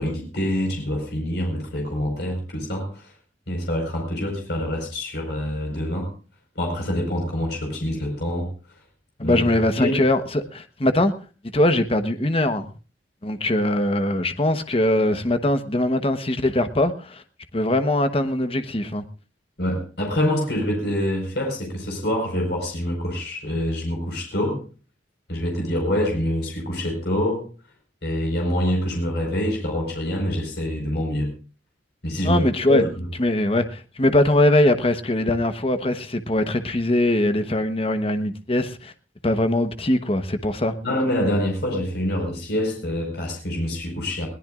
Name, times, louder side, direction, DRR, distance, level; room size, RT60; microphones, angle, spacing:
voice 1, 0.0-3.1 3.5-6.1 6.5-8.5 9.2-10.0 19.6-24.6 25.3-27.5 28.0-31.3 32.0-33.1 40.8-44.3, left 1 dB, 60° left, 1 dB, 4.9 m, -26 dB
voice 2, 9.2-11.1 11.5-12.6 13.2-17.2 17.5-19.0 32.2-32.8 33.2-38.9 39.2-40.7, left 1 dB, 30° left, 9 dB, 1.1 m, -21 dB
21.5 x 18.0 x 2.5 m, 0.35 s
head